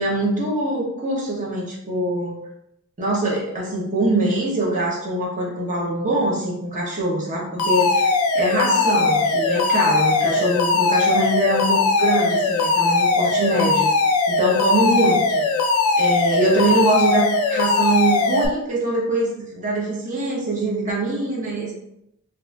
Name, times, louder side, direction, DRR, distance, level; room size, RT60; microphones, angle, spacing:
voice 1, 0.0-2.4 3.0-8.1 8.3-13.9 14.3-15.4 16.0-21.7, right 2 dB, 35° right, -4 dB, 0.8 m, -23 dB
Alarm, 7.6-18.5, left 3 dB, 85° left, 0.5 m, -19 dB
4.1 x 2.5 x 2.3 m, 0.77 s
head